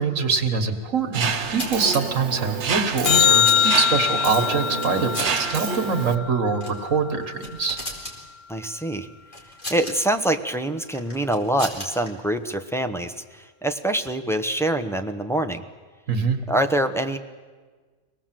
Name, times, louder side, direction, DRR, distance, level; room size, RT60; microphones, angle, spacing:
voice 1, 0.0-7.8 16.1-16.4, right 5 dB, 80° right, 6 dB, 1.9 m, -24 dB
Mechanisms, 1.1-6.1, right 6 dB, 60° right, 1.3 m, -28 dB
sound 1, 1.2-2.0 2.9-4.1 4.7-5.4 5.7-5.8 6.5-6.8 7.2-8.2 9.3-9.9 10.9-12.1, left 1 dB, 40° left, 4.0 m, -35 dB
sound 2, 3.0-7.5 14.1-14.2, left 9 dB, 55° left, 1.0 m, -23 dB
voice 2, 8.5-9.1 9.7-15.6 16.5-17.2, right 1 dB, ahead, 4 dB, 0.8 m, -25 dB
24.5 x 18.5 x 7.6 m, 1.4 s
omnidirectional pair, 1.4 m